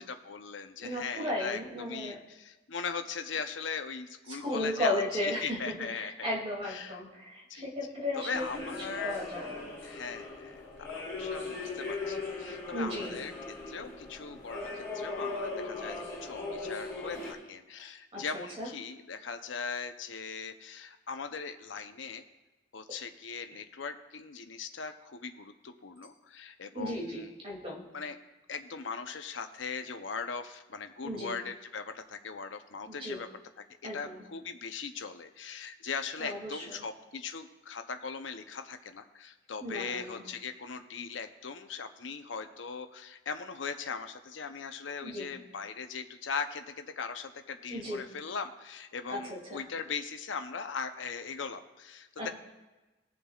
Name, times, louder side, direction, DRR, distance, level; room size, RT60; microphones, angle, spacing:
voice 1, 0.0-1.6 1.9-7.0 7.5-7.7 8.1-9.3 9.8-13.3 13.7-22.3 22.7-27.3 27.9-28.2 28.5-33.3 33.8-52.3, left 5 dB, 75° left, 7 dB, 0.7 m, -39 dB
voice 2, 0.8-2.2 4.3-8.6 9.0-9.7 12.7-13.2 18.1-18.7 26.7-27.9 31.0-31.4 32.9-33.2 33.8-34.2 36.2-36.8 39.6-40.2 45.0-45.3 47.7-48.0 49.1-49.6 52.2-52.3, left 1 dB, 30° right, -3 dB, 2.6 m, -35 dB
sound 1, 8.3-17.3, left 3 dB, 15° left, 3.4 m, -39 dB
20.5 x 7.0 x 2.4 m, 1.1 s
head